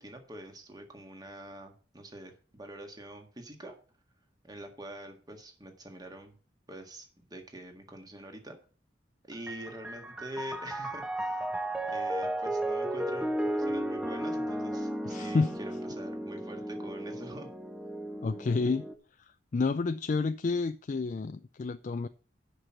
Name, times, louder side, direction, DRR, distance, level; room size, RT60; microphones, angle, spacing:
voice 1, 0.0-3.8 4.4-6.3 6.7-8.6 9.2-11.5 11.8-17.5, right 1 dB, 20° right, 4 dB, 1.7 m, -45 dB
Piano, 9.3-18.9, right 1 dB, 5° right, 0.8 m, -34 dB
voice 2, 15.0-15.5 18.2-18.9 19.2-22.1, left 4 dB, 45° left, 10 dB, 0.4 m, -30 dB
8.0 x 6.1 x 7.2 m, 0.39 s
head